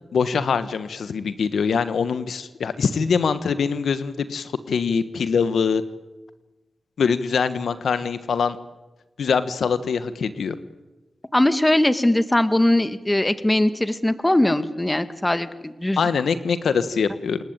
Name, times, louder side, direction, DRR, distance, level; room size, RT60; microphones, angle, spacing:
voice 1, 0.1-5.8 7.0-8.6 9.2-10.6 16.0-17.4, left 6 dB, 90° left, 12 dB, 1.3 m, -23 dB
voice 2, 11.3-16.0, left 1 dB, 15° left, 11 dB, 1.8 m, -20 dB
28.0 x 20.5 x 9.0 m, 1.1 s
cardioid pair, 65°, 0 cm